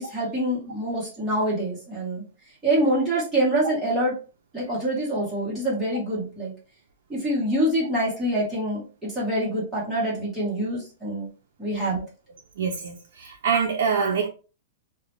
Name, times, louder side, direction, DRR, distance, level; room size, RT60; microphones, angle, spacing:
voice 1, 0.0-2.2 2.6-4.2 4.5-6.5 7.1-11.3 11.6-12.0, right 1 dB, ahead, 1.1 m, -25 dB
voice 2, 12.6-14.3, right 6 dB, 65° right, 0.4 m, -25 dB
2.4 x 2.1 x 3.0 m
supercardioid pair, 180°, 0 cm